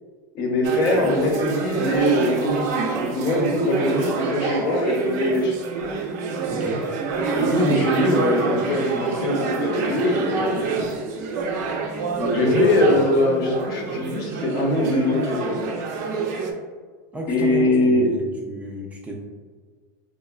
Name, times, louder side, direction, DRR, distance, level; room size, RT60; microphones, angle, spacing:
voice 1, 0.3-5.5 7.3-10.8 12.1-15.6 17.3-18.1, left 1 dB, 45° left, 1 dB, 0.7 m, -22 dB
sound 1, 0.6-16.5, right 4 dB, 65° right, 0.5 m, -26 dB
voice 2, 6.5-6.9 12.5-13.0 17.1-19.2, right 1 dB, 15° right, -1 dB, 0.3 m, -33 dB
4.6 x 2.1 x 2.3 m, 1.5 s
supercardioid pair, 130°, 10 cm